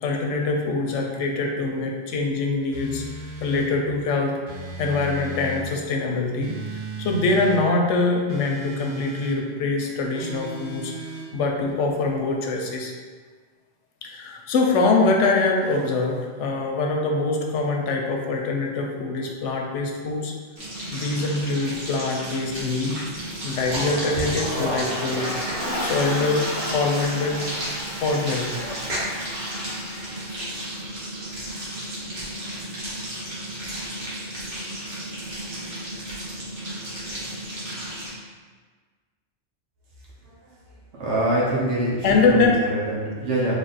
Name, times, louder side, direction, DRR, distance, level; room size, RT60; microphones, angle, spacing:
voice 1, 0.0-3.0 3.4-4.3 4.8-6.5 7.0-10.9 11.3-12.9 14.0-20.3 20.9-23.0 23.4-27.5 28.0-28.7 42.0-42.6, left 3 dB, 85° left, 1 dB, 0.9 m, -24 dB
sound 1, 2.7-3.7 4.5-5.7 6.4-7.6 8.3-9.4 10.2-11.3, right 3 dB, 60° right, 0.9 m, -35 dB
sound 2, 20.6-38.1, right 1 dB, 45° right, 1.2 m, -33 dB
Toilet flush, 23.5-30.3, equal, 15° left, 0.8 m, -32 dB
voice 2, 40.9-43.6, right 1 dB, 85° right, -6 dB, 1.2 m, -25 dB
3.4 x 2.5 x 3.9 m, 1.5 s
omnidirectional pair, 1.2 m